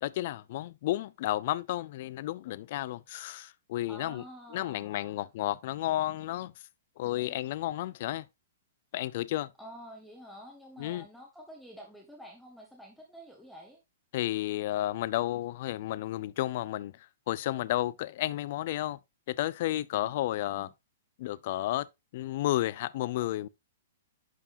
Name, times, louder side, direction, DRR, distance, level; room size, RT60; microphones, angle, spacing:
voice 1, 0.0-4.2 4.5-6.5 7.0-8.2 8.9-9.5 10.8-11.0 14.1-16.9 17.3-19.0 19.3-20.7 21.2-21.9 22.1-23.5, left 15 dB, 50° left, 0.4 m, -32 dB
voice 2, 3.9-5.3 7.0-7.4 9.6-13.8 20.0-20.1 20.5-20.7, equal, ahead, 1.4 m, -49 dB
11.0 x 4.7 x 2.6 m
hypercardioid pair, 150°, 0 cm